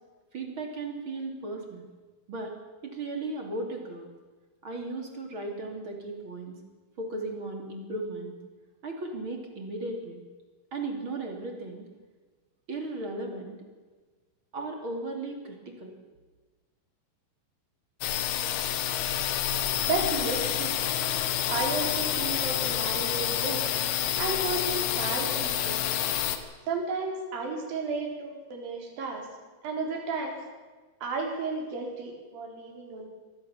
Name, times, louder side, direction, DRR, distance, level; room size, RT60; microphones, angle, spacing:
voice 1, 0.3-1.8 2.3-2.5 2.8-4.1 4.6-6.6 7.0-8.3 8.8-10.2 10.7-11.9 12.7-13.6 14.5-15.9, right 2 dB, 30° right, 2 dB, 2.9 m, -36 dB
sound 1, 18.0-26.4, left 11 dB, 90° left, 4.2 m, -28 dB
voice 2, 19.8-21.0 21.5-23.7 24.2-26.0 26.7-29.3 29.6-30.4 31.0-33.1, right 3 dB, 45° right, 1 dB, 5.6 m, -33 dB
24.0 x 18.5 x 7.2 m, 1.3 s
omnidirectional pair, 5.8 m